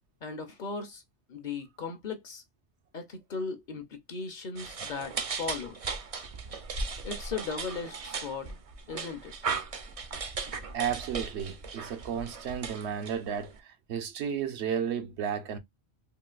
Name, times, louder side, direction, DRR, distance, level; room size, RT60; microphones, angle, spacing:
voice 1, 0.2-1.0 1.3-2.4 2.9-5.8 7.0-8.6 8.9-9.3, left 4 dB, 50° left, 0.7 m, -37 dB
Dog walks, 4.5-13.6, right 4 dB, 45° right, 0.5 m, -37 dB
voice 2, 10.7-15.6, right 8 dB, 85° right, 1.0 m, -33 dB
3.7 x 2.4 x 2.3 m
omnidirectional pair, 1.1 m